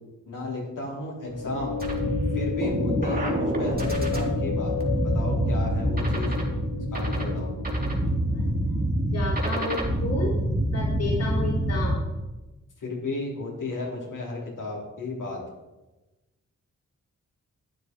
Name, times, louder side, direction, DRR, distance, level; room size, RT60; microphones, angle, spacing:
voice 1, 0.3-1.8 2.3-4.7 5.0-6.4 6.9-7.5 12.8-15.4, left 2 dB, 70° left, -3 dB, 4.1 m, -33 dB
sound 1, 1.3-8.6, left 7 dB, 85° left, 1.0 m, -33 dB
sound 2, 1.8-12.0, right 1 dB, 30° right, 3.3 m, -26 dB
voice 2, 8.3-8.8 9.1-10.4 10.7-12.0, left 3 dB, 50° left, -4 dB, 3.0 m, -32 dB
12.0 x 8.9 x 4.7 m, 1.1 s
cardioid pair, 55°, 32 cm